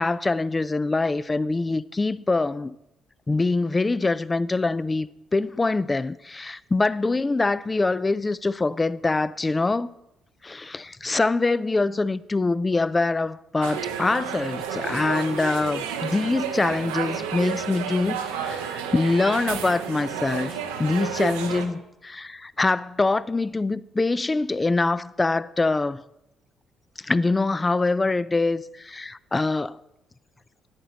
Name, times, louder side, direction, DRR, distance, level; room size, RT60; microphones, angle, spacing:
voice 1, 0.0-2.7 3.3-9.9 10.4-26.0 27.0-29.8, left 3 dB, 25° left, 0.4 m, -24 dB
sound 1, 13.6-21.7, right 7 dB, 80° right, 0.7 m, -31 dB
10.0 x 8.9 x 4.0 m
hypercardioid pair, 45°, 0 cm